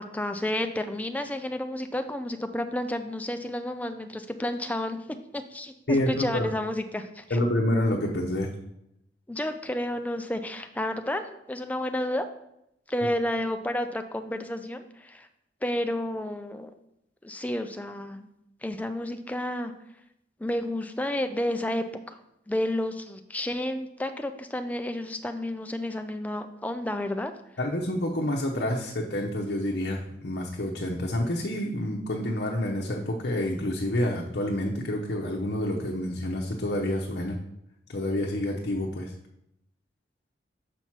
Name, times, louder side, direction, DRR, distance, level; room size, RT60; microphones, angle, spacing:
voice 1, 0.0-7.4 9.3-12.3 12.9-15.3 15.6-16.7 17.2-18.3 18.6-19.7 20.4-22.2 22.5-27.3, left 1 dB, 10° left, 7 dB, 0.5 m, -31 dB
voice 2, 5.9-6.5 7.3-8.5 27.6-37.4 37.9-39.1, left 1 dB, 60° left, -1 dB, 0.8 m, -28 dB
6.8 x 5.8 x 4.6 m, 0.82 s
head